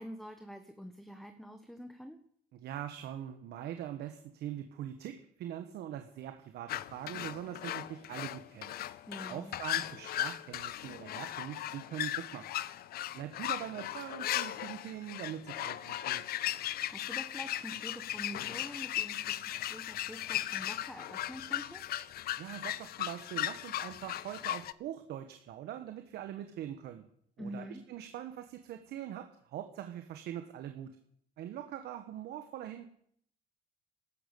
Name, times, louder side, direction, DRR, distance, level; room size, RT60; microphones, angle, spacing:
voice 1, 0.0-2.2 9.1-9.5 16.6-21.8 27.4-27.8, equal, ahead, 7 dB, 1.3 m, -46 dB
voice 2, 2.5-8.7 9.3-12.5 13.1-16.3 22.4-27.0 27.4-30.9 31.4-32.9, right 11 dB, 75° right, 7 dB, 1.4 m, -42 dB
sound 1, 6.7-24.7, left 13 dB, 65° left, 0.7 m, -37 dB
13.5 x 12.0 x 8.4 m, 0.65 s
cardioid pair, 110°, 17 cm